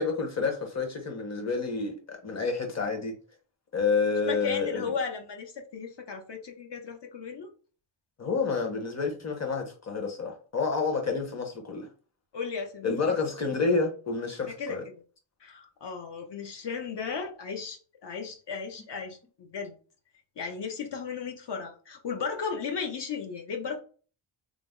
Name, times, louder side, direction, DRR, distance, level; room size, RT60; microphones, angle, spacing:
voice 1, 0.0-3.1 3.7-4.8 8.2-11.9 12.8-14.8, left 4 dB, 35° left, 0.9 m, -29 dB
voice 2, 4.2-7.5 12.3-12.9 14.5-15.0 15.4-19.8 20.4-23.8, left 5 dB, 60° left, 0.8 m, -35 dB
3.3 x 2.0 x 3.6 m
wide cardioid pair, 100°, 48 cm